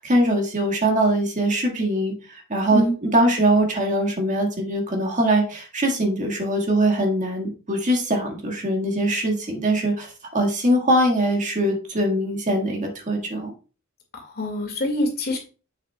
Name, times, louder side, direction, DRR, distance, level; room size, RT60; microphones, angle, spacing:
voice 1, 0.0-10.1 10.3-13.5, right 1 dB, 35° right, 2 dB, 1.6 m, -22 dB
voice 2, 14.1-15.4, left 1 dB, 50° left, 2 dB, 2.0 m, -25 dB
7.1 x 6.9 x 2.2 m, 0.35 s
head